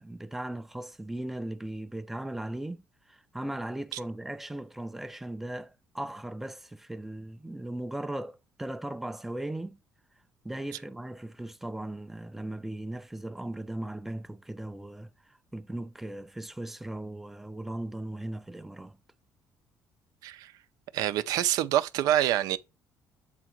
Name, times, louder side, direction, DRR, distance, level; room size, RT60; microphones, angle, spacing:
voice 1, 0.0-9.8 10.4-19.0, right 1 dB, 5° right, 0.4 m, -38 dB
voice 2, 20.9-22.6, right 12 dB, 90° right, 0.6 m, -26 dB
8.0 x 3.8 x 4.6 m
cardioid pair, 170°, 6 cm